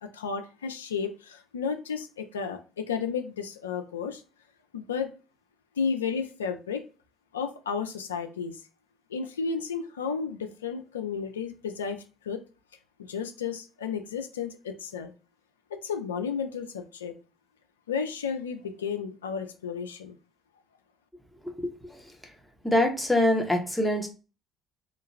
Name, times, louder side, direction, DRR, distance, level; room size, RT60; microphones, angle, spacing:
voice 1, 0.0-4.2 4.7-5.1 5.8-6.8 7.3-8.6 9.1-12.4 13.0-15.1 15.7-17.1 17.9-20.2, left 6 dB, 85° left, 5 dB, 0.4 m, -33 dB
voice 2, 21.4-22.0 22.6-24.1, left 1 dB, 5° left, 2 dB, 0.9 m, -25 dB
2.4 x 2.2 x 3.1 m, 0.33 s
hypercardioid pair, 55°, 0 cm